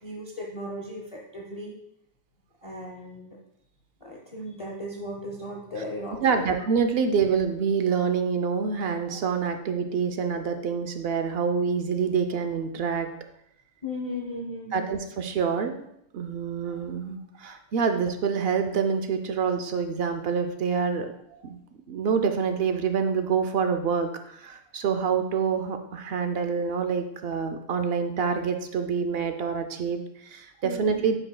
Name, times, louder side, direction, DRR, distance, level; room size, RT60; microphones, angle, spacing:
voice 1, 0.0-1.7 2.6-3.4 4.0-6.6 13.8-14.9 30.6-31.0, left 1 dB, 30° left, -1 dB, 0.8 m, -36 dB
voice 2, 6.2-13.1 14.7-15.8 16.1-21.1 21.4-21.6 21.9-31.2, right 6 dB, 60° right, 7 dB, 0.7 m, -26 dB
9.7 x 5.4 x 2.2 m, 0.75 s
omnidirectional pair, 1.4 m